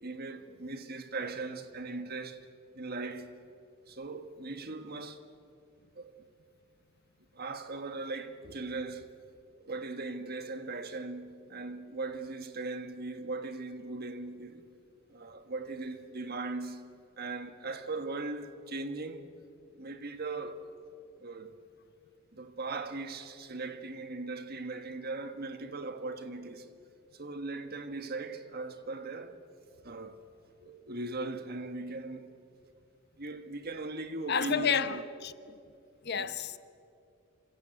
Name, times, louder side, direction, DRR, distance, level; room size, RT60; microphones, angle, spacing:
voice 1, 0.0-2.5 2.7-3.4 3.9-5.2 5.9-6.2 7.3-9.1 9.6-14.7 15.1-19.3 19.7-20.8 21.2-21.6 22.3-26.7 27.1-29.4 29.8-30.2 30.6-32.3 33.2-35.0 36.2-36.4, right 3 dB, 45° right, 1.6 m, -39 dB
voice 2, 34.3-35.3 36.0-36.6, left 6 dB, 50° left, 0.9 m, -30 dB
27.5 x 25.5 x 8.0 m
head